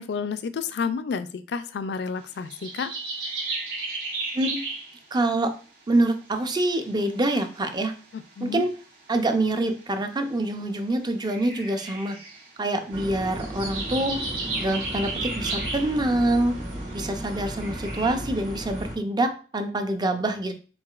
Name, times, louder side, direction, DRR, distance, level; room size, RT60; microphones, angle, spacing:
voice 1, 0.0-2.9 8.1-8.6, left 5 dB, 65° left, 11 dB, 0.4 m, -30 dB
sound 1, 2.5-5.0 6.5-6.6 6.8-7.8 9.8-9.9 11.2-12.7 13.2-16.0 17.0-17.2 17.6-18.1, right 3 dB, 75° right, 1.3 m, -33 dB
voice 2, 5.1-5.5 5.9-7.9 8.4-8.7 9.1-12.2 12.6-14.2 14.6-16.5 16.9-20.5, right 1 dB, 25° right, 7 dB, 0.5 m, -25 dB
sound 2, 12.9-19.0, equal, 45° right, 1.4 m, -35 dB
4.6 x 4.0 x 2.4 m, 0.38 s
head